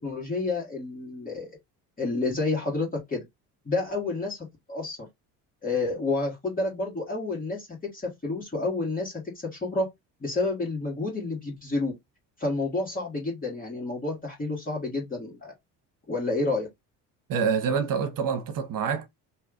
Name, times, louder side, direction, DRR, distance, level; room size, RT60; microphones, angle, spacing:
voice 1, 0.0-1.5 2.0-3.2 3.6-5.0 5.6-9.9 10.2-11.9 12.4-15.5 16.1-16.7, left 3 dB, 20° left, 1.6 m, -29 dB
voice 2, 17.3-19.1, right 6 dB, 60° right, 1.1 m, -26 dB
3.2 x 2.8 x 3.7 m
cardioid pair, 95°, 37 cm